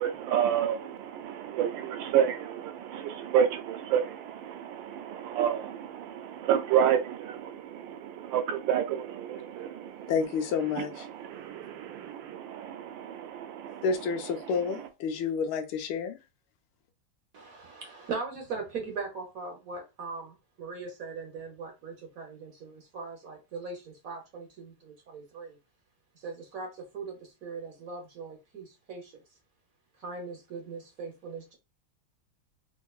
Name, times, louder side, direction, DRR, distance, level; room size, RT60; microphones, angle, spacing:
voice 1, 0.0-10.1 10.8-13.8, right 9 dB, 75° right, 1.2 m, -30 dB
voice 2, 10.1-11.1 13.8-16.2, left 5 dB, 90° left, 1.5 m, -29 dB
voice 3, 17.3-25.6 26.1-29.1 30.0-31.5, right 4 dB, 55° right, 1.0 m, -40 dB
3.6 x 3.0 x 2.3 m
omnidirectional pair, 2.2 m